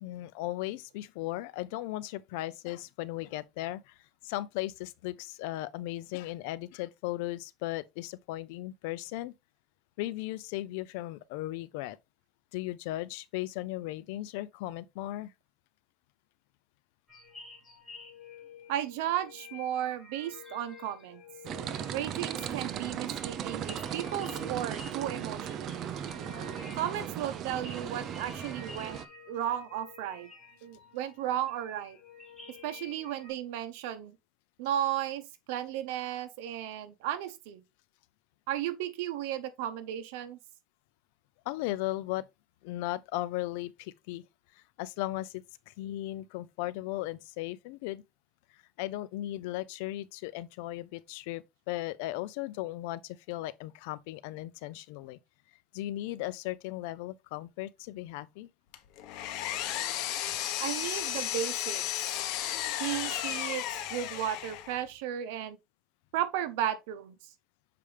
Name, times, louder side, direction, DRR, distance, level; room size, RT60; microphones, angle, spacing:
voice 1, 0.0-4.0 4.2-9.3 10.0-12.0 12.5-15.3 41.5-42.2 42.6-44.2 44.8-48.0 48.8-55.2 55.7-58.5 60.2-60.7, left 16 dB, 80° left, 0.5 m, -37 dB
sound 1, 17.1-33.3, left 5 dB, 10° left, 2.9 m, -51 dB
voice 2, 18.7-21.2 21.9-25.9 26.8-29.0 29.3-30.3 30.6-32.0 32.6-34.2 34.6-37.6 38.5-40.4 60.6-61.8 62.8-65.6 66.1-67.2, right 11 dB, 80° right, 1.0 m, -34 dB
sound 2, 21.4-29.0, right 9 dB, 40° right, 0.6 m, -37 dB
Power tool, 58.7-64.8, left 12 dB, 60° left, 1.0 m, -34 dB
6.8 x 5.0 x 3.3 m
cardioid pair, 150°, 0 cm